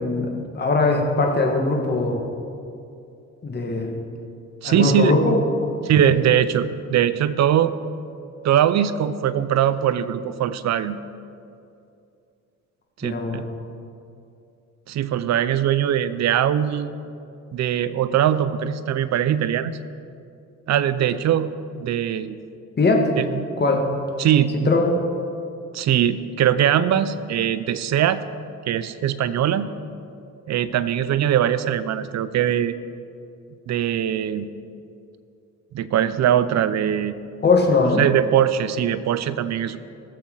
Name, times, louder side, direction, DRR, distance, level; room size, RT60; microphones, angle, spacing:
voice 1, 0.0-2.2 3.4-4.0 4.6-5.7 6.0-6.1 13.0-13.4 22.8-23.1 23.6-23.9 24.7-25.0 37.4-38.0, left 3 dB, 35° left, 1 dB, 1.9 m, -20 dB
voice 2, 4.6-5.1 5.8-7.7 8.4-11.0 13.0-13.5 14.9-16.9 17.5-19.8 20.7-22.4 23.2-23.5 24.2-24.7 25.7-28.2 28.7-29.7 30.5-32.8 33.7-34.5 35.7-37.1 38.0-39.8, right 10 dB, 65° right, 13 dB, 0.7 m, -21 dB
19.0 x 7.5 x 3.9 m, 2.5 s
cardioid pair, 90°, 30 cm